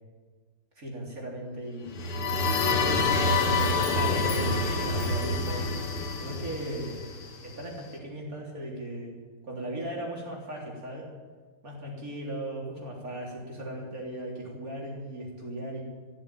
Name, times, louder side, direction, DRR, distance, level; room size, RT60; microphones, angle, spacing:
voice 1, 0.8-1.9 3.8-5.7 6.1-7.0 7.4-9.1 9.4-11.1 11.6-15.8, right 1 dB, 40° right, -2 dB, 3.9 m, -37 dB
sound 1, 1.9-7.6, left 3 dB, 90° left, 2.6 m, -27 dB
15.0 x 8.7 x 9.3 m, 1.4 s
omnidirectional pair, 2.4 m